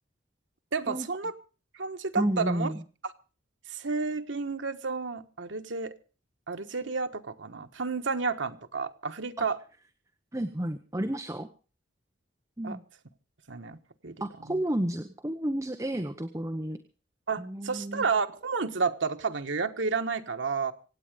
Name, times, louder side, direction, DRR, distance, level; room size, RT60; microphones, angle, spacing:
voice 1, 0.7-1.3 1.8-2.7 3.7-5.9 6.5-9.6 12.6-12.8 13.5-13.8 14.0-14.1 17.3-20.7, right 4 dB, 90° right, 7 dB, 1.3 m, -31 dB
voice 2, 2.2-2.8 9.4-9.5 10.3-11.5 12.6-12.8 14.2-16.8 17.4-18.0, right 1 dB, 15° right, 7 dB, 0.9 m, -31 dB
25.5 x 9.1 x 5.0 m, 0.36 s
head